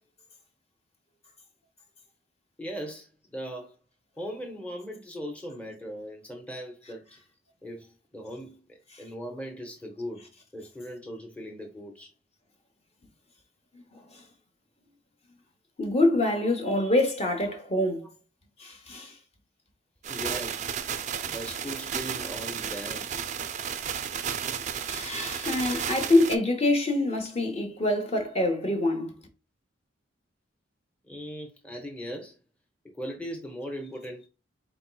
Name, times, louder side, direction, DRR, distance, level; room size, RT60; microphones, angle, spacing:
voice 1, 2.6-3.7 4.2-7.0 7.6-10.2 10.5-12.1 20.1-23.1 31.1-32.4 32.9-34.3, equal, 5° left, 0.7 m, -39 dB
voice 2, 15.8-18.1 18.6-19.1 24.8-29.2, left 1 dB, 35° left, 0.9 m, -25 dB
sound 1, 20.0-26.4, right 8 dB, 40° right, 0.4 m, -33 dB
4.3 x 4.0 x 2.2 m
head